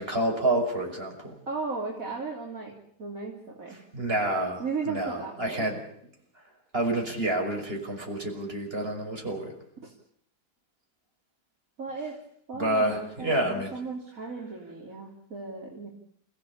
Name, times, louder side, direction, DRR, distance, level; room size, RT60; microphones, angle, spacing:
voice 1, 0.0-1.4 3.9-5.8 6.7-9.5 12.6-13.7, right 1 dB, 35° right, 1 dB, 6.2 m, -28 dB
voice 2, 1.5-3.8 4.6-5.7 9.8-9.9 11.8-12.2 12.5-15.9, right 4 dB, 55° right, -2 dB, 3.7 m, -36 dB
29.0 x 16.5 x 8.8 m, 0.70 s
omnidirectional pair, 1.7 m